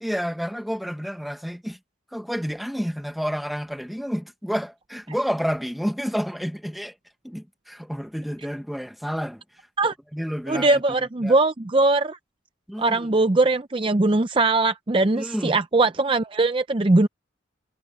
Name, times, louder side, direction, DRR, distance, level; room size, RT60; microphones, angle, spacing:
voice 1, 0.0-1.8 2.1-6.9 7.2-9.4 10.1-10.8 11.2-11.3 12.7-13.2 15.1-15.6, equal, ahead, 1.1 m, -30 dB
voice 2, 10.5-12.2 12.8-17.1, right 2 dB, 25° right, 0.5 m, -20 dB
head